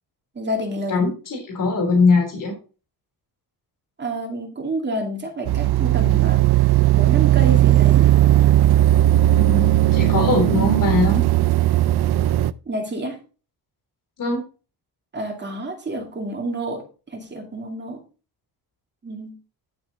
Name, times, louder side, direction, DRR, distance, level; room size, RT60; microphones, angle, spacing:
voice 1, 0.3-1.1 4.0-8.1 12.7-13.2 15.1-18.0 19.0-19.4, right 1 dB, 25° right, 1 dB, 2.5 m, -29 dB
voice 2, 0.9-2.5 9.3-11.2 14.2-14.4, left 3 dB, 50° left, 1 dB, 3.4 m, -21 dB
sound 1, 5.4-12.5, right 14 dB, 70° right, 0.5 m, -17 dB
11.0 x 6.3 x 4.1 m, 0.34 s
wide cardioid pair, 165°, 40 cm